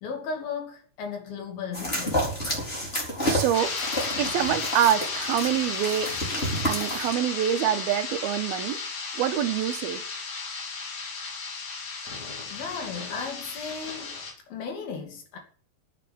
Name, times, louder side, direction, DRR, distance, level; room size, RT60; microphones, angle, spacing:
voice 1, 0.0-2.3 12.5-14.2 14.5-15.4, left 5 dB, 75° left, 4.6 m, -35 dB
sound 1, 1.7-7.1, equal, 15° left, 5.0 m, -30 dB
voice 2, 3.3-3.7 4.2-6.1 6.7-8.8 9.1-10.0, right 10 dB, 80° right, 3.0 m, -25 dB
sound 2, 3.5-14.3, left 4 dB, 55° left, 4.2 m, -34 dB
9.0 x 8.3 x 9.3 m
omnidirectional pair, 4.3 m